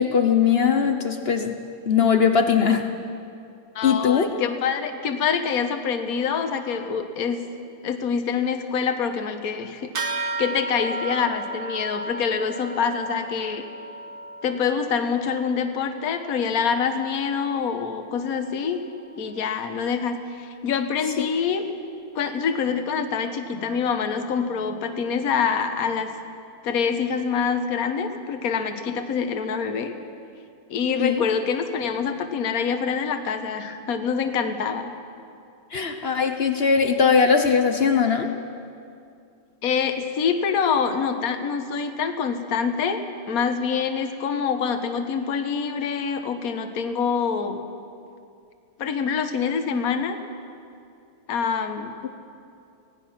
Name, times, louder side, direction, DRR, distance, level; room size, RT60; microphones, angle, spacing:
voice 1, 0.0-1.6 1.8-2.9 3.8-4.3 21.2-21.3 31.0-31.2 35.7-38.3, left 6 dB, 70° left, 6 dB, 0.5 m, -20 dB
voice 2, 3.7-7.4 7.8-13.6 14.4-18.8 19.2-21.6 22.1-26.1 26.6-29.9 30.7-34.9 39.6-47.6 48.8-50.2 51.3-51.9, left 6 dB, 50° left, 7 dB, 1.4 m, -25 dB
sound 1, 9.9-19.8, right 2 dB, 50° right, 1.8 m, -36 dB
25.0 x 18.0 x 5.9 m, 2.5 s
omnidirectional pair, 2.4 m